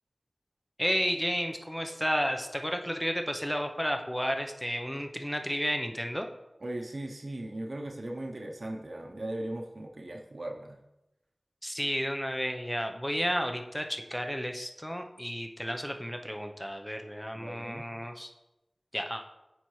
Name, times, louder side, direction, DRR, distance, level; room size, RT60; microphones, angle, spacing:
voice 1, 0.8-6.3 11.6-18.3 18.9-19.2, equal, 5° left, 4 dB, 0.7 m, -32 dB
voice 2, 6.6-10.8 17.3-17.9, right 1 dB, 60° right, 2 dB, 0.7 m, -38 dB
8.4 x 5.6 x 3.2 m, 0.94 s
wide cardioid pair, 50°, 0 cm